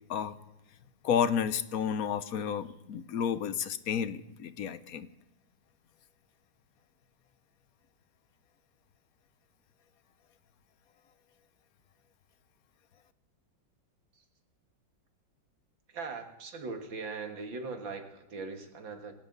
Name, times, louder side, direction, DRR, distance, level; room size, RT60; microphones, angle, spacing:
voice 1, 1.0-5.1, left 8 dB, 60° left, 13 dB, 1.1 m, -31 dB
voice 2, 15.9-19.1, right 4 dB, 85° right, 5 dB, 2.6 m, -40 dB
26.5 x 12.5 x 4.0 m, 0.91 s
omnidirectional pair, 2.0 m